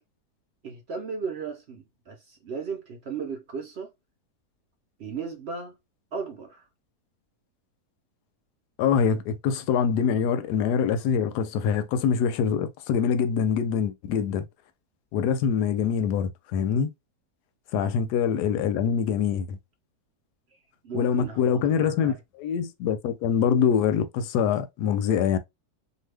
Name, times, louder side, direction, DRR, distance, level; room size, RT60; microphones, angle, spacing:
voice 1, 0.6-3.9 5.0-5.7 6.1-6.6 17.7-17.9 20.8-22.2, right 5 dB, 60° right, 0.7 m, -36 dB
voice 2, 8.8-14.4 15.1-16.9 17.7-19.6 20.9-25.4, left 7 dB, 85° left, 1.1 m, -24 dB
2.7 x 2.3 x 3.3 m
omnidirectional pair, 1.7 m